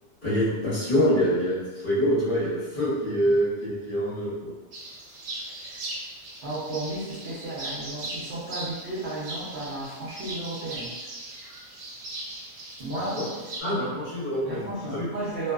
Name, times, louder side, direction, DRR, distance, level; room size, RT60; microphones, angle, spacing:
voice 1, 0.2-4.5 13.2-13.3 13.6-15.1, equal, 45° left, -10 dB, 0.9 m, -25 dB
sound 1, 4.7-13.6, right 2 dB, 85° right, 1.0 m, -39 dB
voice 2, 6.4-10.9 12.8-13.2 14.4-15.5, right 2 dB, 60° right, -8 dB, 0.9 m, -33 dB
2.5 x 2.1 x 2.3 m, 1.2 s
omnidirectional pair, 1.3 m